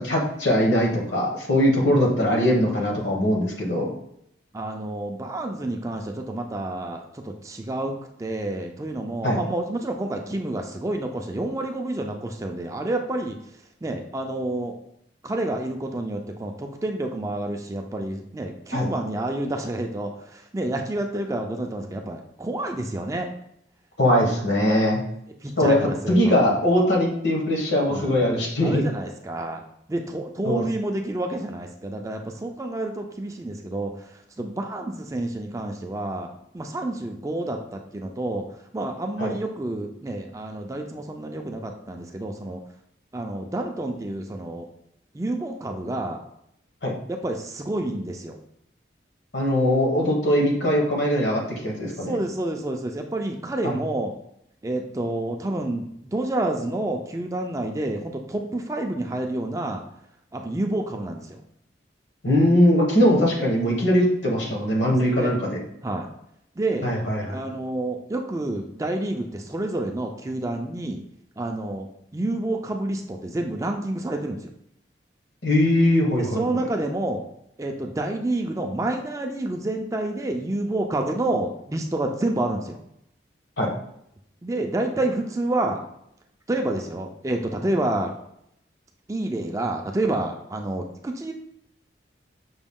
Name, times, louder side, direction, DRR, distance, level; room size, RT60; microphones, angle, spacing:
voice 1, 0.0-3.9 9.2-9.4 18.7-18.9 24.0-25.0 25.6-25.8 26.1-28.8 30.4-30.6 39.2-39.3 46.8-46.9 49.3-52.1 53.6-53.8 62.2-65.6 66.8-67.4 75.4-76.4 83.6-83.7, left 1 dB, 70° left, -1 dB, 1.2 m, -21 dB
voice 2, 4.5-13.4 13.8-14.8 15.2-23.3 25.4-26.6 27.9-29.6 29.9-34.0 34.4-38.4 38.7-42.6 43.1-44.7 45.1-46.2 47.1-48.4 52.0-54.1 54.6-59.8 60.3-61.4 64.9-65.4 65.8-66.1 66.6-66.9 67.3-71.0 71.4-71.9 72.1-74.4 76.2-77.2 77.6-82.8 84.4-85.8 86.5-88.1 89.1-91.3, right 1 dB, 15° right, 3 dB, 0.3 m, -29 dB
6.0 x 2.2 x 3.6 m, 0.75 s
head